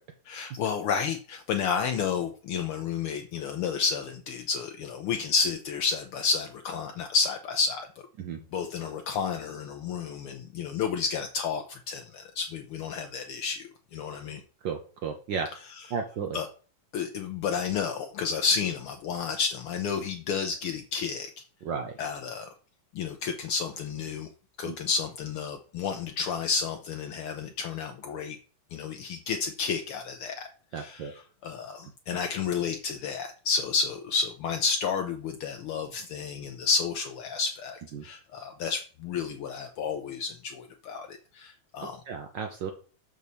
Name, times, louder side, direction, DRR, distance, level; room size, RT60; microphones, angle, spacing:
voice 1, 0.3-7.9 8.5-14.4 15.7-15.8 16.3-16.5 16.9-21.3 22.0-22.5 22.9-24.3 24.6-28.4 28.7-30.5 30.7-42.0, left 5 dB, 80° left, 5 dB, 1.2 m, -31 dB
voice 2, 14.6-15.5 15.9-16.4 21.6-22.0 24.6-24.8 30.7-31.1 37.9-38.0 42.1-42.7, right 6 dB, 80° right, 4 dB, 1.0 m, -33 dB
6.3 x 5.5 x 6.9 m, 0.39 s
omnidirectional pair, 3.3 m